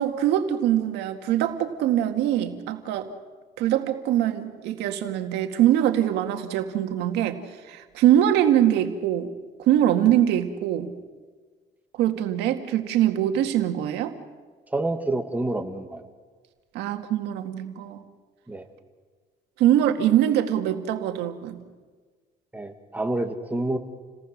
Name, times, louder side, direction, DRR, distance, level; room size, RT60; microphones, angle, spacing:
voice 1, 0.0-3.1 3.6-7.4 7.7-9.3 9.6-10.9 12.0-14.1 16.7-18.0 19.6-21.6, right 11 dB, 90° right, 6 dB, 2.0 m, -23 dB
voice 2, 14.7-16.0 18.5-18.7 22.5-23.8, right 2 dB, 10° right, 5 dB, 2.1 m, -28 dB
29.0 x 18.5 x 6.6 m, 1.4 s
cardioid pair, 110°, 17 cm